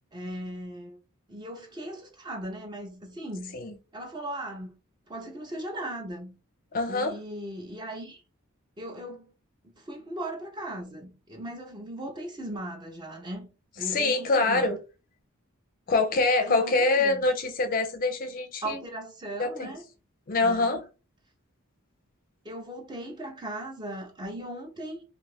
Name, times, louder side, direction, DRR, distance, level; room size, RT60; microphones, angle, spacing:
voice 1, 0.1-1.0 1.3-3.6 3.9-4.7 5.1-6.4 6.9-8.2 8.8-9.3 9.8-13.5 13.8-14.7 16.4-17.2 18.6-19.8 20.4-20.8 22.4-25.0, right 1 dB, 20° right, 0.5 m, -38 dB
voice 2, 6.7-7.1 13.8-14.8 15.9-18.8 19.4-19.8 20.3-20.8, left 3 dB, 40° left, 0.5 m, -25 dB
2.5 x 2.4 x 3.2 m
head